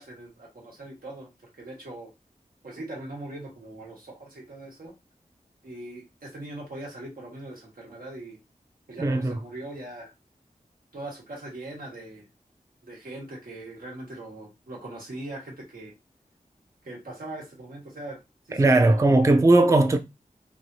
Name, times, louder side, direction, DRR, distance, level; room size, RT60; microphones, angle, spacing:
voice 1, 0.0-1.3 1.6-2.1 2.6-4.9 5.6-8.4 8.9-10.1 10.9-12.3 12.8-15.9 16.8-18.2 18.5-19.1, right 2 dB, 90° right, 1.3 m, -40 dB
voice 2, 9.0-9.3 18.5-20.0, right 2 dB, 20° right, 0.4 m, -18 dB
3.2 x 2.5 x 2.6 m
wide cardioid pair, 80°, 15 cm